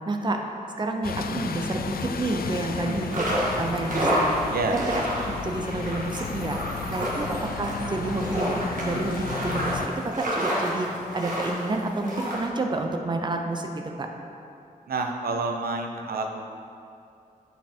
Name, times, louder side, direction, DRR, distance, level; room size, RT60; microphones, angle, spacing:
voice 1, 0.1-4.3 4.7-4.8 5.3-14.1, right 2 dB, 30° right, 3 dB, 0.6 m, -29 dB
Bus, 1.0-9.9, left 6 dB, 80° left, 0.4 m, -34 dB
voice 2, 2.6-3.0 4.5-4.8 7.0-7.3 14.9-16.4, right 3 dB, 85° right, 3 dB, 0.8 m, -29 dB
sound 1, 2.9-12.4, equal, 60° right, 1.8 m, -29 dB
8.7 x 5.6 x 4.4 m, 2.5 s
wide cardioid pair, 165°, 15 cm